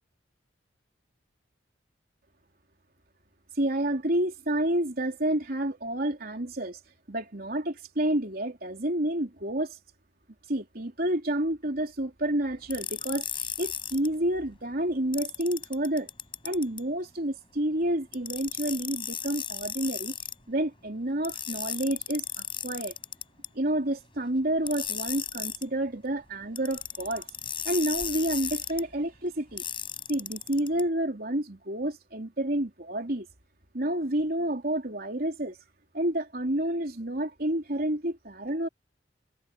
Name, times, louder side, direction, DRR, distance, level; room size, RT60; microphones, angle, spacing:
voice 1, 3.6-6.8 7.1-9.8 10.5-16.1 16.4-20.1 20.5-22.9 23.5-27.3 27.6-29.6 30.1-33.3 33.7-35.6 35.9-38.7, right 1 dB, 55° right, 3.6 m, -29 dB
sound 1, 12.7-14.1 15.1-16.8 18.1-20.4 21.2-23.5 24.7-25.7 26.6-28.8 29.6-30.8, left 8 dB, 30° left, 7.2 m, -35 dB
head